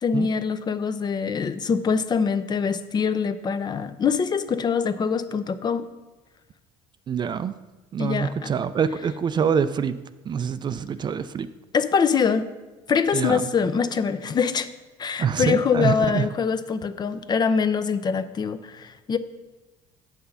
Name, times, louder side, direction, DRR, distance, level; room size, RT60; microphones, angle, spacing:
voice 1, 0.0-5.8 8.0-8.5 11.7-12.5 12.9-14.7 15.0-19.2, left 6 dB, 35° left, 12 dB, 0.5 m, -24 dB
voice 2, 7.1-7.5 7.9-11.5 13.1-13.5 15.2-16.3, right 7 dB, 35° right, 13 dB, 0.4 m, -25 dB
7.6 x 5.9 x 5.5 m, 1.1 s
supercardioid pair, 95°, 13 cm